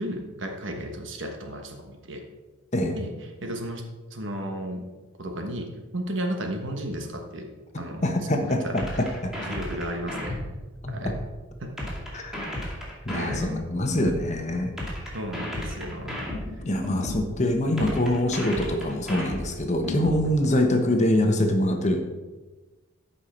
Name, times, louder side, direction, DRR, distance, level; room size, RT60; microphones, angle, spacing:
voice 1, 0.0-2.2 2.9-3.1 3.4-3.8 4.1-4.8 5.2-7.5 7.8-9.1 9.5-10.4 10.9-11.2 11.6-12.0 13.1-13.7 15.1-16.3 20.2-20.3, right 1 dB, 60° right, 4 dB, 1.3 m, -34 dB
voice 2, 8.0-8.6 9.0-9.3 12.1-12.4 13.0-14.7 16.6-22.0, left 1 dB, 35° left, 4 dB, 1.1 m, -24 dB
sound 1, 8.8-11.3 11.8-14.3 14.8-17.3 17.8-20.3, left 1 dB, ahead, 2.3 m, -33 dB
13.5 x 5.7 x 4.4 m, 1.2 s
head